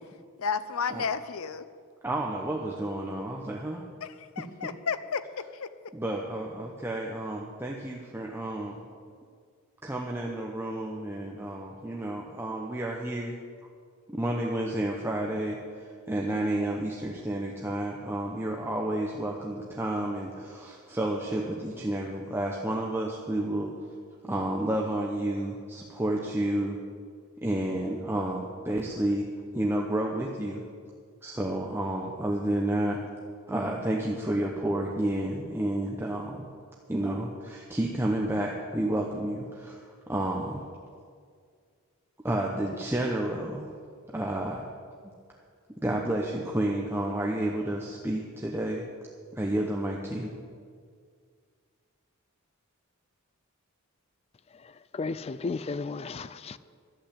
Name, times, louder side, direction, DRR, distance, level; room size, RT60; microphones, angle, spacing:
voice 1, 0.4-1.7 4.0-5.7, left 5 dB, 70° left, 13 dB, 0.6 m, -32 dB
voice 2, 2.0-3.8 4.4-4.7 5.9-8.9 9.8-13.4 14.1-23.7 24.2-26.8 27.4-30.6 31.2-33.0 33.5-36.5 36.9-40.6 42.2-43.7 44.1-44.7 45.8-48.8 49.3-50.3, right 1 dB, 10° right, -1 dB, 0.8 m, -31 dB
voice 3, 54.9-56.6, left 4 dB, 30° left, 15 dB, 0.3 m, -33 dB
11.5 x 8.0 x 8.6 m, 2.1 s
head